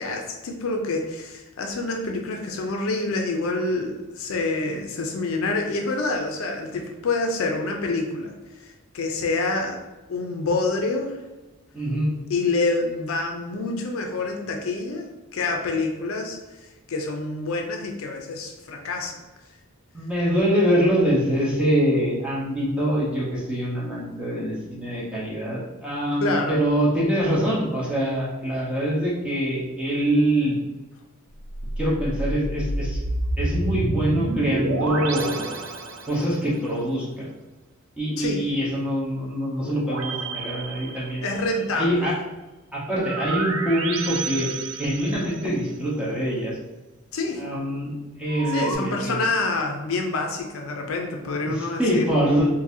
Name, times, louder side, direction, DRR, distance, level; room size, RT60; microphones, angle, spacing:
voice 1, 0.0-9.8 10.1-11.2 12.3-15.1 15.3-19.2 26.2-26.6 38.2-38.4 41.2-42.1 47.1-47.4 48.5-52.1, left 3 dB, 65° left, 3 dB, 0.5 m, -27 dB
voice 2, 11.7-12.1 19.9-30.6 31.8-33.0 33.4-35.4 36.1-37.3 38.0-41.2 41.7-42.1 42.7-44.5 44.8-46.6 47.4-49.2 51.4-52.5, equal, 5° right, -7 dB, 0.9 m, -24 dB
sound 1, 31.4-36.5 39.8-41.6 43.0-45.6 48.3-48.7, right 2 dB, 65° right, 0.4 m, -29 dB
3.9 x 2.6 x 2.6 m, 1.1 s
head